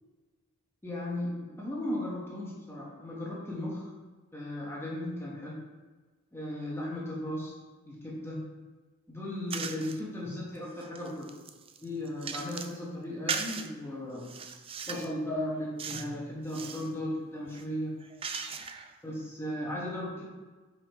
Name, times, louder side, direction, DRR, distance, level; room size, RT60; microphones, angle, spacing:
voice 1, 0.8-3.9 4.3-5.6 6.3-7.6 7.9-8.4 9.1-11.3 11.8-14.3 14.9-17.9 19.0-20.2, left 1 dB, 10° left, -5 dB, 1.2 m, -36 dB
sound 1, 9.5-10.0 10.5-12.8 13.3-13.7 14.2-15.1 15.8-16.1 16.4-16.9 17.5-18.9, right 6 dB, 25° right, 0.3 m, -38 dB
5.9 x 4.9 x 4.6 m, 1.3 s
head